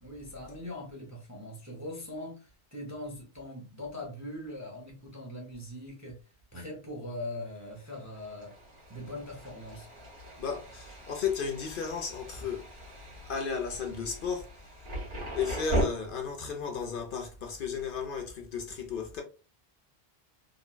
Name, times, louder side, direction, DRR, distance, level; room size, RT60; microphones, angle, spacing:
voice 1, 0.0-6.2 6.5-8.6 8.9-9.9, left 1 dB, 20° right, 0.5 m, -41 dB
Thunder, 7.7-15.8, right 1 dB, 75° right, 1.7 m, -39 dB
voice 2, 10.4-12.7 13.3-14.5 15.3-19.2, left 6 dB, 60° left, 0.8 m, -34 dB
3.8 x 2.1 x 2.2 m
omnidirectional pair, 1.1 m